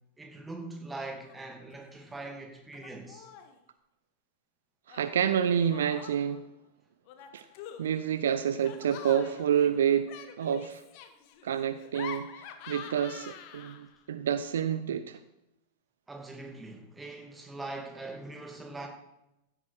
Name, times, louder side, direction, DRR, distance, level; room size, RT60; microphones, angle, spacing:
voice 1, 0.2-3.3 16.1-18.9, right 2 dB, 10° right, 2.5 m, -42 dB
Laughter, 1.0-1.4 1.7-2.3 2.7-3.6 4.9-6.4 7.1-14.0, left 8 dB, 45° left, 1.3 m, -47 dB
voice 2, 4.9-6.4 7.3-7.5 7.8-10.1 10.4-10.8 11.4-15.2, right 8 dB, 65° right, 0.5 m, -28 dB
15.0 x 8.5 x 4.8 m
figure-of-eight pair, 90°, 0 cm